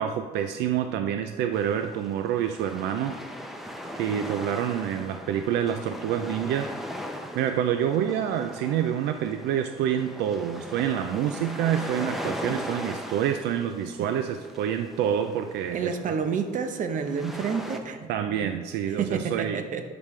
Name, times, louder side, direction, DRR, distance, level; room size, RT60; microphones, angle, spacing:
voice 1, 0.0-3.5 4.0-6.7 7.3-16.2 18.1-19.6, right 9 dB, 85° right, 8 dB, 0.4 m, -27 dB
sound 1, 1.5-17.8, equal, ahead, 0.7 m, -39 dB
voice 2, 15.7-18.1 19.0-19.8, right 6 dB, 50° right, 7 dB, 0.8 m, -29 dB
10.5 x 5.2 x 3.2 m, 1.5 s
cardioid pair, 110°, 17 cm